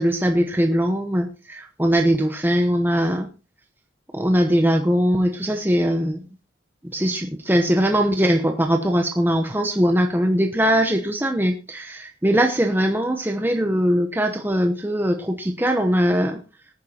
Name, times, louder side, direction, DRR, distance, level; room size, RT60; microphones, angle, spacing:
voice 1, 0.0-3.3 4.1-6.3 6.8-16.4, equal, 10° right, 4 dB, 0.9 m, -21 dB
19.0 x 10.5 x 2.9 m, 0.32 s
head